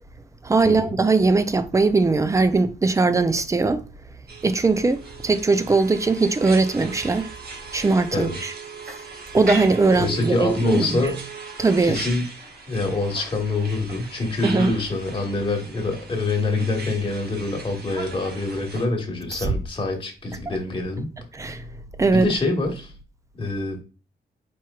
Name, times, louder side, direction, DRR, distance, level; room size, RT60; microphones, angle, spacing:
voice 1, 0.4-3.8 4.4-7.3 7.7-8.5 9.3-11.0 11.6-12.0 14.4-14.7 19.3-19.5 20.5-20.6 21.3-21.6 22.0-22.3, right 3 dB, 15° right, 0.4 m, -20 dB
sound 1, 4.3-18.9, right 4 dB, 65° right, 1.0 m, -38 dB
voice 2, 10.0-11.2 11.9-12.2 12.7-21.1 22.1-22.9 23.4-23.8, left 2 dB, 30° left, 1.4 m, -25 dB
4.5 x 4.5 x 2.3 m
wide cardioid pair, 130°, 18 cm